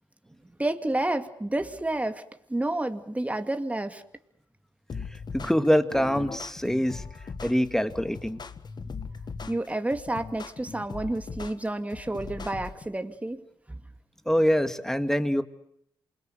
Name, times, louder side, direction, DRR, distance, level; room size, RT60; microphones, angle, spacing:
voice 1, 0.6-2.2 2.5-4.0 9.5-13.4 13.7-13.8, right 1 dB, 15° right, 8 dB, 2.4 m, -30 dB
sound 1, 4.9-12.9, left 5 dB, 50° left, 1.7 m, -39 dB
voice 2, 5.3-7.0 7.4-8.4 14.3-15.4, equal, 5° left, 10 dB, 2.3 m, -24 dB
28.0 x 22.0 x 8.0 m, 0.73 s
supercardioid pair, 55°, 10 cm